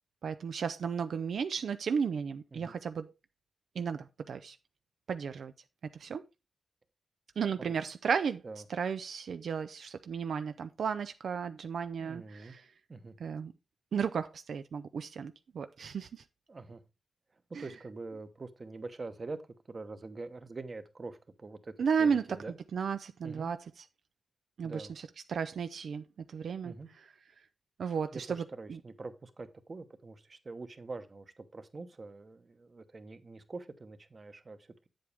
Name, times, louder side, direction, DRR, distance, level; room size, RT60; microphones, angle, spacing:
voice 1, 0.2-3.1 3.8-4.6 5.1-5.5 5.9-6.2 7.4-8.4 8.7-12.7 13.2-13.5 13.9-16.2 17.5-17.6 21.8-22.2 22.7-23.6 24.6-26.7 27.8-28.4 28.7-28.8, right 6 dB, 85° right, 0.4 m, -34 dB
voice 2, 12.0-12.5 12.9-13.1 16.5-16.8 17.5-19.4 19.7-21.7 22.0-22.6 23.2-23.5 24.6-24.9 26.6-26.9 28.1-34.9, right 3 dB, 45° right, 1.1 m, -44 dB
8.3 x 7.7 x 3.4 m
cardioid pair, 75°, 0 cm